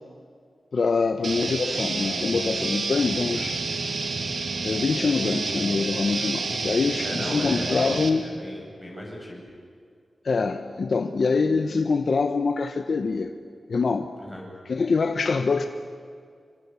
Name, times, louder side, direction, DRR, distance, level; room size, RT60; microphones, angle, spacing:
voice 1, 0.7-3.6 4.6-8.2 10.2-13.3 13.7-14.1 14.7-15.7, left 4 dB, 60° left, 1.0 m, -24 dB
sound 1, 1.2-8.1, right 3 dB, 70° right, 2.6 m, -29 dB
voice 2, 7.0-7.9 8.2-9.4 14.2-14.4, left 1 dB, 10° left, 7.6 m, -36 dB
27.5 x 24.5 x 7.1 m
wide cardioid pair, 135°, 0 cm